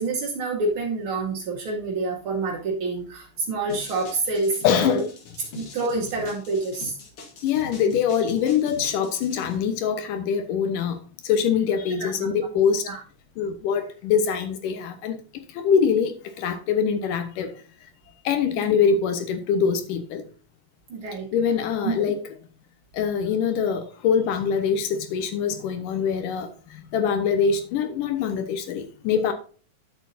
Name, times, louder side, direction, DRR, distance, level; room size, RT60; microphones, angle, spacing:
voice 1, 0.0-5.0 5.5-7.0 12.0-12.3 12.8-13.0 20.9-21.3 21.8-21.9, right 3 dB, 65° right, 1.3 m, -27 dB
sound 1, 3.7-9.6, left 2 dB, 50° left, 2.0 m, -42 dB
voice 2, 4.6-5.1 7.4-11.0 11.2-12.9 13.4-17.5 18.2-20.2 21.3-22.2 22.9-29.3, left 7 dB, 75° left, 2.6 m, -24 dB
10.5 x 7.1 x 2.7 m
omnidirectional pair, 4.0 m